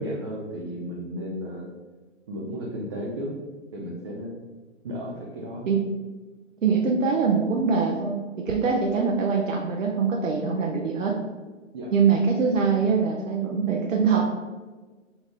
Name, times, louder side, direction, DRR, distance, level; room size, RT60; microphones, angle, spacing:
voice 1, 0.0-1.7 2.3-3.3 3.7-4.4 4.8-5.7 11.7-11.9, equal, 25° right, -3 dB, 0.4 m, -34 dB
voice 2, 6.6-11.2 11.9-14.2, right 5 dB, 75° right, 0 dB, 0.8 m, -23 dB
6.2 x 2.4 x 3.4 m, 1.3 s
hypercardioid pair, 130°, 39 cm